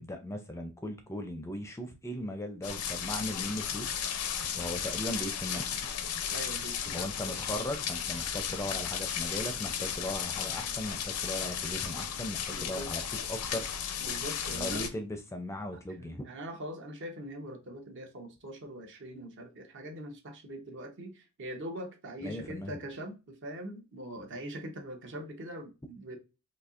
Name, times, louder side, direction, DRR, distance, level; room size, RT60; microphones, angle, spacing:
voice 1, 0.0-5.8 6.9-13.7 14.5-16.3 22.2-22.8, left 1 dB, 15° left, 0.4 m, -38 dB
sound 1, 2.6-14.9, left 8 dB, 80° left, 0.5 m, -35 dB
voice 2, 6.3-7.6 12.5-12.9 14.0-14.9 16.0-26.2, right 1 dB, 55° right, 0.8 m, -42 dB
4.2 x 2.8 x 2.4 m
head